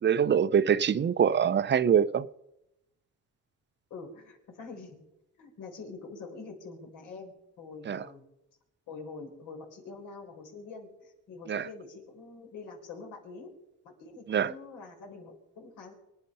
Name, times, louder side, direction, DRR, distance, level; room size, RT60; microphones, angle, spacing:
voice 1, 0.0-2.3 7.9-8.0 11.5-11.7 14.3-14.5, right 8 dB, 35° right, 0.6 m, -24 dB
voice 2, 3.9-5.0 5.4-8.2 8.9-13.5 13.8-15.9, left 4 dB, 85° left, 4.2 m, -45 dB
24.0 x 9.9 x 5.5 m
cardioid pair, 90°, 30 cm